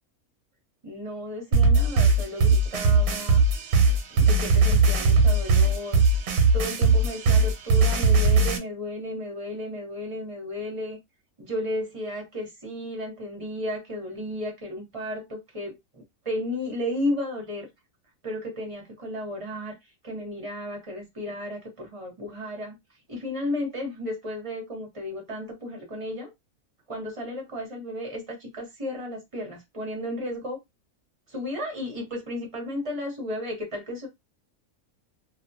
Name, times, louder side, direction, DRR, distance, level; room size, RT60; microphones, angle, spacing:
voice 1, 0.8-3.6 4.1-11.0 11.4-17.7 18.2-22.7 23.1-26.3 26.9-30.6 31.3-34.1, left 1 dB, 25° right, 0.9 m, -34 dB
sound 1, 1.5-8.6, right 3 dB, 90° right, 1.2 m, -19 dB
2.6 x 2.3 x 2.6 m
omnidirectional pair, 1.6 m